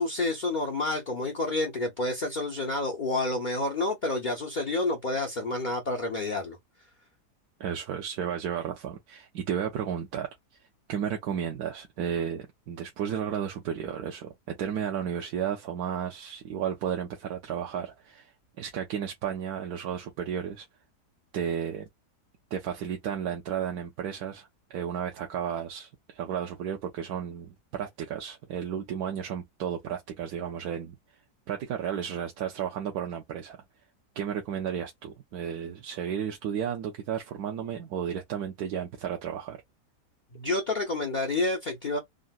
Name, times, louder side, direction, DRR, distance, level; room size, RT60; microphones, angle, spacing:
voice 1, 0.0-6.6 40.3-42.0, left 2 dB, 60° left, 0.5 m, -29 dB
voice 2, 7.6-10.3 10.9-20.7 21.3-21.9 22.5-31.0 31.5-33.6 34.2-39.6, right 8 dB, 75° right, 1.1 m, -33 dB
3.7 x 2.1 x 2.3 m
omnidirectional pair, 1.7 m